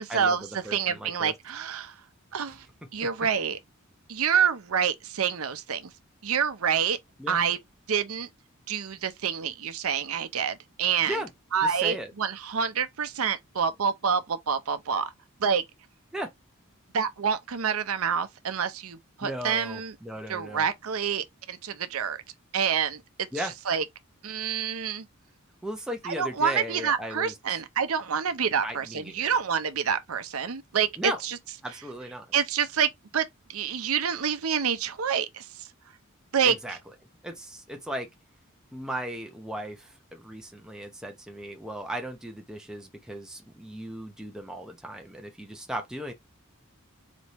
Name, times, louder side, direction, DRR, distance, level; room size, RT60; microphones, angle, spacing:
voice 1, 0.0-1.9 2.3-2.7 2.9-3.6 4.1-5.9 6.2-7.0 7.3-7.6 7.9-8.3 8.7-11.2 11.5-15.1 15.4-15.6 16.9-19.9 20.3-22.2 22.5-23.8 24.2-25.1 26.0-31.4 32.3-35.7 36.3-36.6, right 7 dB, 75° right, 0.7 m, -27 dB
voice 2, 0.6-1.3 7.2-7.4 11.1-11.3 11.6-12.1 16.1-16.3 19.2-20.7 23.3-23.5 25.6-27.3 28.6-29.4 31.0-31.2 31.6-32.3 36.4-36.8 37.2-38.1 38.7-46.1, right 1 dB, 5° right, 0.7 m, -36 dB
4.1 x 3.4 x 3.0 m
head